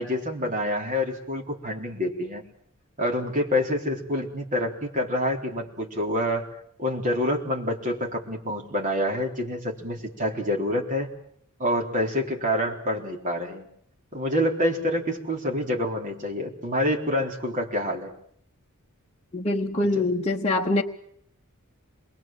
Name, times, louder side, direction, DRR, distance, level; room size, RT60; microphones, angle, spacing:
voice 1, 0.0-2.4 3.0-6.5 6.8-11.1 11.6-13.7 14.1-18.1 20.0-20.1, left 1 dB, 35° right, 1 dB, 4.0 m, -27 dB
voice 2, 19.3-20.8, left 2 dB, 30° left, 0 dB, 1.0 m, -24 dB
27.0 x 22.0 x 7.6 m, 0.67 s
head